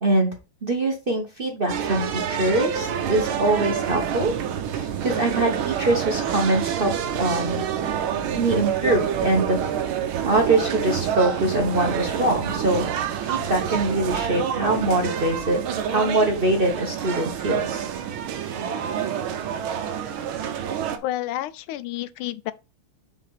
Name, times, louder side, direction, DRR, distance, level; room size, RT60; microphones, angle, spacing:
voice 1, 0.0-0.3 0.6-4.3 4.7-7.6 8.3-9.6 10.3-12.8 13.2-15.6 15.9-17.9, right 2 dB, 35° right, 0.9 m, -23 dB
sound 1, 1.7-21.0, right 9 dB, 80° right, 1.7 m, -27 dB
voice 2, 21.0-22.5, left 14 dB, 85° left, 1.4 m, -30 dB
6.1 x 3.6 x 5.7 m
omnidirectional pair, 2.3 m